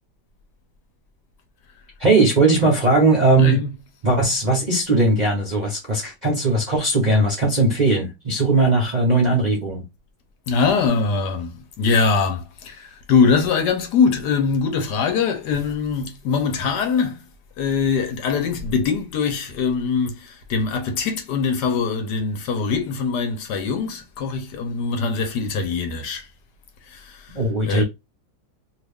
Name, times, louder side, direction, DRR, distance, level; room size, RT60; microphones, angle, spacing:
voice 1, 2.0-3.6 4.0-9.8 27.3-27.8, right 2 dB, 40° right, 0.6 m, -18 dB
voice 2, 3.4-3.7 10.5-17.2 17.6-26.3 26.9-27.4 27.7-27.8, left 5 dB, 70° left, 1.3 m, -22 dB
2.9 x 2.5 x 3.4 m
omnidirectional pair, 1.9 m